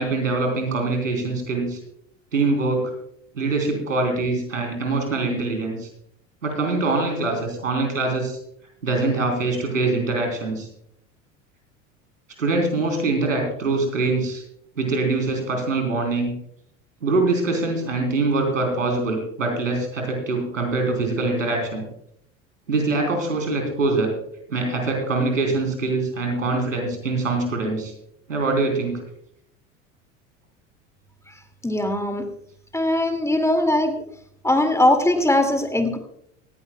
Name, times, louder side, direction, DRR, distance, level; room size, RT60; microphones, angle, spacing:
voice 1, 0.0-1.8 2.3-2.9 3.3-5.9 6.4-8.4 8.8-10.7 12.4-14.4 14.8-16.3 17.0-21.8 22.7-24.1 24.5-27.9 28.3-28.9, right 3 dB, 90° right, 2 dB, 3.9 m, -23 dB
voice 2, 31.6-32.3 32.7-34.0 34.4-36.0, left 1 dB, 10° left, 6 dB, 2.3 m, -20 dB
18.5 x 15.0 x 2.3 m, 0.71 s
hypercardioid pair, 75°, 37 cm